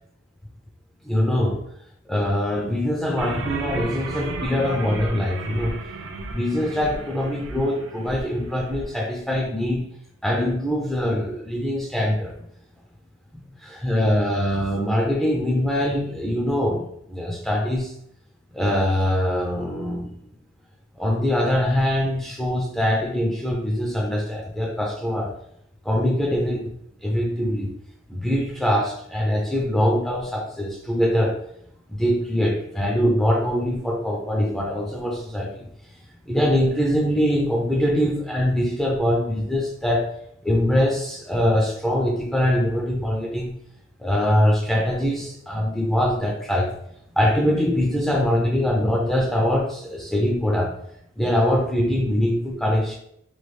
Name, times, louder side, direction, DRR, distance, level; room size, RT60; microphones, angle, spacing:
voice 1, 1.0-1.6 2.1-5.8 6.3-10.0 10.2-12.4 13.3-17.9 18.5-20.2 21.0-25.3 25.8-26.7 27.0-27.7 28.1-31.4 31.9-35.7 36.3-40.1 40.4-43.5 44.0-46.8 47.2-50.7 51.2-53.0, left 1 dB, ahead, -1 dB, 0.3 m, -23 dB
sound 1, 3.2-8.9, right 3 dB, 70° right, 0.4 m, -34 dB
3.1 x 2.3 x 3.1 m, 0.71 s
head